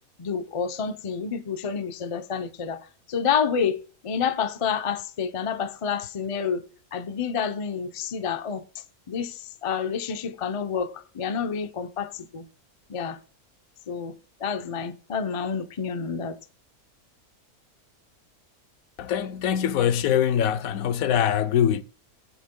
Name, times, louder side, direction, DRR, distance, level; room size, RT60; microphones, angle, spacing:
voice 1, 0.2-6.6 6.9-8.6 9.1-12.5 12.9-13.2 13.9-16.4, left 6 dB, 50° left, 0.3 m, -29 dB
voice 2, 19.0-21.8, left 9 dB, 70° left, 1.0 m, -23 dB
19.0 x 8.1 x 2.2 m
omnidirectional pair, 1.6 m